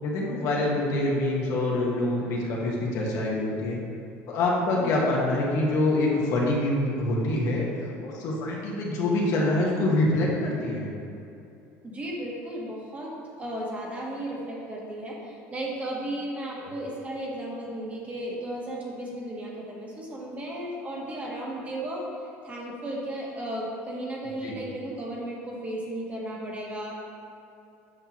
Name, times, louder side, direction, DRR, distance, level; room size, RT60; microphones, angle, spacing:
voice 1, 0.0-3.8 4.3-10.9 16.6-16.7 24.4-24.5, left 2 dB, 60° left, -3 dB, 1.4 m, -25 dB
voice 2, 11.8-13.1 13.4-26.9, right 1 dB, 25° right, -3 dB, 1.3 m, -35 dB
8.1 x 5.5 x 3.0 m, 2.7 s
cardioid pair, 125°, 6 cm